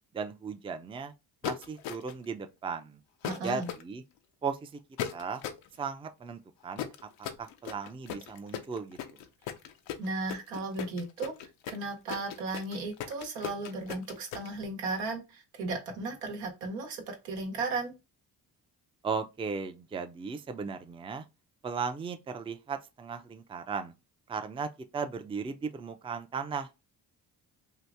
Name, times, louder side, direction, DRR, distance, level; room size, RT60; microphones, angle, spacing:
voice 1, 0.1-1.1 1.4-3.0 3.4-4.0 4.4-4.7 5.1-5.4 5.8-6.9 7.4-9.0 19.0-21.2 21.6-23.9 24.3-26.7, right 5 dB, 15° right, 0.4 m, -36 dB
sound 1, 1.4-2.3 3.2-3.8 5.0-5.7 6.8-14.5, left 9 dB, 85° left, 0.6 m, -37 dB
voice 2, 3.2-3.7 10.0-11.3 11.7-17.9, right 3 dB, 90° right, 1.0 m, -35 dB
2.9 x 2.5 x 3.4 m
supercardioid pair, 60°, 45 cm